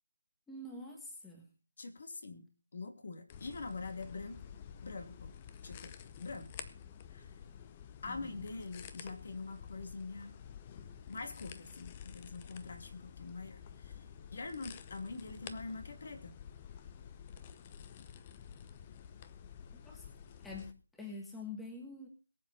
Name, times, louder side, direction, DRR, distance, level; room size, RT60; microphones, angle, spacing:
voice 1, 0.5-1.5 8.0-8.4 19.8-20.1 20.4-22.1, left 3 dB, 5° left, 0 dB, 1.6 m, -46 dB
voice 2, 1.8-4.4 4.8-5.3 5.6-5.9 6.2-6.5 7.1-7.3 8.0-10.3 11.1-14.0 14.3-16.3, left 3 dB, 50° left, 6 dB, 2.6 m, -44 dB
sound 1, 3.3-20.7, left 8 dB, 25° left, 0.8 m, -50 dB
22.5 x 7.6 x 4.3 m, 0.35 s
figure-of-eight pair, 165°, 0 cm